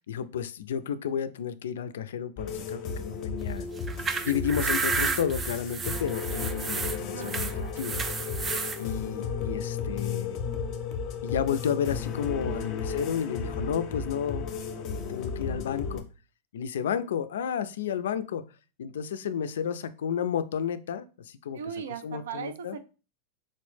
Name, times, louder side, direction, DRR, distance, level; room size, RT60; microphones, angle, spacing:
voice 1, 0.1-3.7 4.2-7.5 7.8-8.0 8.8-10.4 11.2-16.0 16.5-18.4 18.8-21.6 22.0-22.7, left 8 dB, 85° left, 0.3 m, -32 dB
sound 1, 2.4-16.0, left 5 dB, 35° left, 0.6 m, -34 dB
sound 2, 3.8-8.8, right 5 dB, 15° right, 0.3 m, -31 dB
voice 2, 7.1-8.0 12.5-12.6 21.5-22.8, right 7 dB, 85° right, 0.5 m, -39 dB
4.0 x 2.0 x 3.1 m
supercardioid pair, 145°, 0 cm